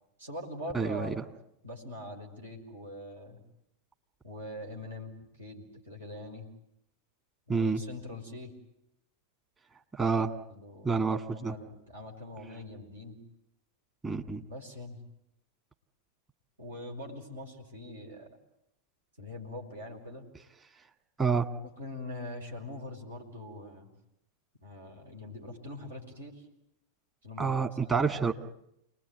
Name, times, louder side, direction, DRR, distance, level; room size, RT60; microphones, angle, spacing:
voice 1, 0.2-1.2 1.6-3.4 4.2-5.1 5.4-6.5 7.5-8.5 10.5-13.2 14.5-15.0 16.6-18.3 19.2-20.3 21.8-23.9 24.6-26.5 27.2-28.1, left 1 dB, 70° right, 2 dB, 5.8 m, -43 dB
voice 2, 0.7-1.1 7.5-7.8 9.9-10.3 10.8-11.5 14.0-14.4 21.2-21.5 27.4-28.3, right 5 dB, 20° right, 6 dB, 2.0 m, -28 dB
29.5 x 20.5 x 9.5 m, 0.79 s
figure-of-eight pair, 90°, 0 cm